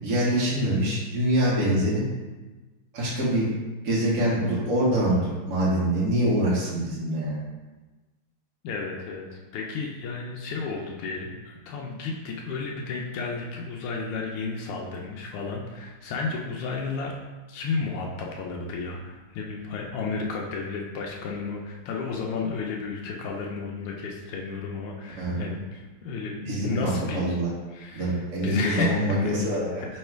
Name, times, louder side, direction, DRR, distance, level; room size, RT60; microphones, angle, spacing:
voice 1, 0.0-2.0 2.9-3.5 3.8-7.4 25.2-25.4 26.4-27.5 27.9-29.8, right 1 dB, 50° right, -7 dB, 1.1 m, -25 dB
voice 2, 8.6-17.1 17.5-27.4 27.7-29.0 29.2-29.3, left 4 dB, 85° left, 0 dB, 1.5 m, -32 dB
3.6 x 3.2 x 4.5 m, 1.2 s
omnidirectional pair, 2.4 m